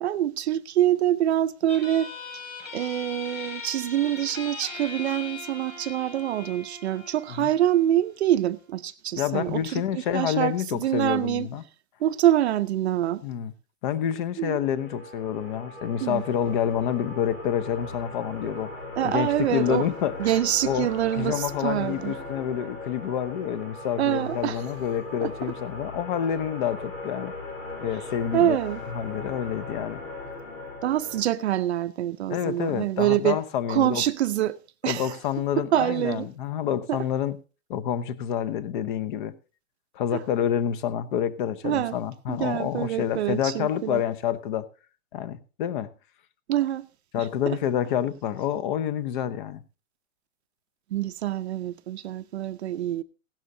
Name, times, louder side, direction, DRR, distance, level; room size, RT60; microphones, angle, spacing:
voice 1, 0.0-2.1 2.7-11.5 12.0-13.2 14.4-14.6 16.0-16.2 19.0-19.9 20.2-22.1 24.0-24.6 25.2-25.3 28.3-28.8 30.8-33.4 33.7-34.6 34.8-35.1 35.6-36.3 36.9-37.0 40.1-40.2 41.6-41.9 42.3-44.0 46.5-46.9 47.2-47.6 50.9-53.0, right 12 dB, 50° right, 0.6 m, -25 dB
sound 1, 1.7-8.7, left 4 dB, 75° left, 6.7 m, -40 dB
voice 2, 9.2-11.6 13.2-13.5 13.8-18.7 19.0-20.9 21.2-27.3 27.8-28.6 28.9-30.0 32.3-34.0 34.9-37.4 37.7-39.3 39.9-44.7 45.1-45.9 47.1-49.6, left 9 dB, 35° left, 0.9 m, -28 dB
sound 2, 14.5-31.2, left 2 dB, 90° left, 7.8 m, -39 dB
16.5 x 12.0 x 2.7 m
hypercardioid pair, 145°, 41 cm